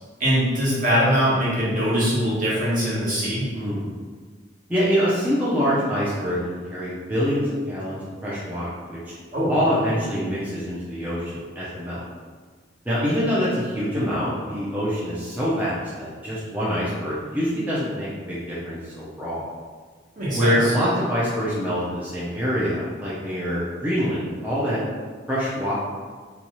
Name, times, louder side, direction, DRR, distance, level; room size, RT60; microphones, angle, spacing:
voice 1, 0.2-3.5 9.3-9.5 20.2-20.7, equal, 45° right, -8 dB, 1.0 m, -22 dB
voice 2, 3.5-3.9 4.7-9.1 9.5-12.0 12.9-19.5 20.3-24.8 25.3-25.7, equal, 10° right, -9 dB, 0.4 m, -25 dB
2.7 x 2.3 x 2.9 m, 1.5 s
head